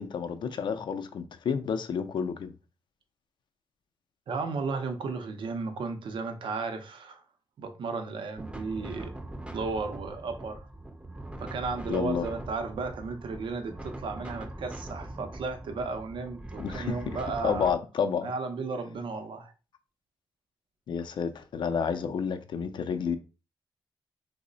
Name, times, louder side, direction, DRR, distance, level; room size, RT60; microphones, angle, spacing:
voice 1, 0.0-2.5 11.9-12.3 16.6-17.2 17.4-18.3 20.9-23.2, left 6 dB, 70° left, 0.4 m, -30 dB
voice 2, 4.3-7.2 7.6-9.1 9.5-10.7 11.4-17.7 18.2-19.5, right 4 dB, 80° right, 0.6 m, -34 dB
sound 1, 8.4-17.7, right 1 dB, 15° right, 0.5 m, -42 dB
3.1 x 2.1 x 3.8 m
wide cardioid pair, 115°, 8 cm